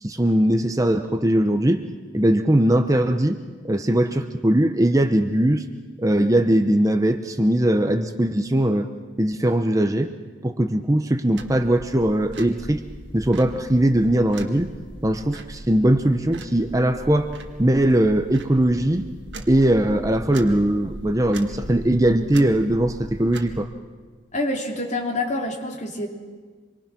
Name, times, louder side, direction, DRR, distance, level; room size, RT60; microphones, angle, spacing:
voice 1, 0.0-1.8 2.1-3.4 3.6-5.6 6.0-8.9 9.2-10.1 10.4-12.8 13.1-14.7 15.0-17.3 17.6-19.0 19.5-23.7, right 1 dB, 20° right, 7 dB, 0.8 m, -20 dB
sound 1, 11.4-23.6, right 1 dB, 70° right, 1.9 m, -39 dB
voice 2, 24.3-26.1, left 2 dB, 40° left, 1 dB, 3.0 m, -26 dB
26.5 x 23.5 x 6.1 m, 1.5 s
head